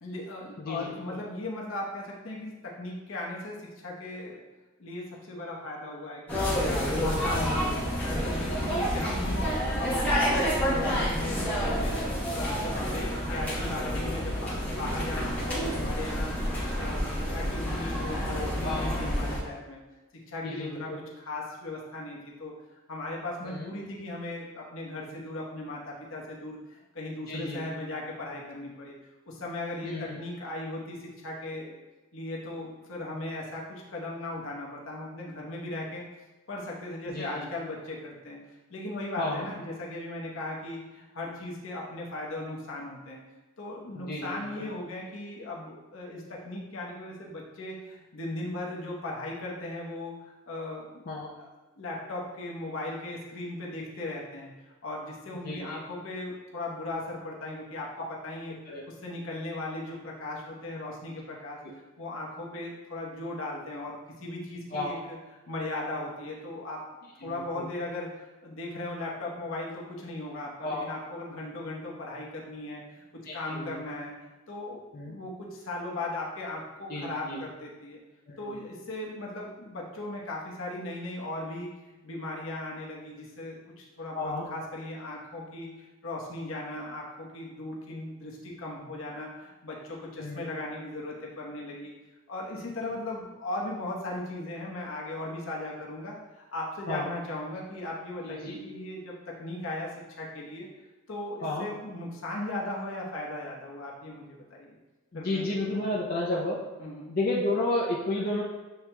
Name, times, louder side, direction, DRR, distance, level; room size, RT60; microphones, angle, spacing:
voice 1, 0.0-4.4 4.8-12.0 12.3-16.5 16.7-19.8 20.3-22.5 22.9-28.9 29.2-31.8 32.1-36.0 36.5-38.4 38.7-43.2 43.6-51.1 51.8-61.6 62.0-65.2 65.5-66.8 67.2-73.0 73.3-74.1 74.5-78.0 78.4-81.7 82.0-91.9 92.3-100.7 101.1-104.8 105.1-105.7 106.8-107.1, left 2 dB, 70° left, -3 dB, 0.9 m, -37 dB
voice 2, 0.6-1.2 7.3-7.6 18.6-19.0 20.4-21.0 23.4-23.7 27.3-27.6 29.8-30.2 37.1-37.5 39.2-39.5 43.9-44.7 51.1-51.3 55.4-55.8 58.7-58.8 64.7-64.9 67.2-67.7 70.6-70.9 73.3-73.8 74.9-75.2 76.9-77.4 78.3-78.5 84.1-84.5 90.2-90.4 96.9-97.1 98.2-98.6 101.4-101.7 105.1-106.6 107.1-108.4, left 2 dB, 45° left, -4 dB, 0.5 m, -32 dB
sound 1, 6.3-19.4, equal, 10° left, 1.0 m, -29 dB
7.8 x 2.9 x 2.2 m, 1.1 s
head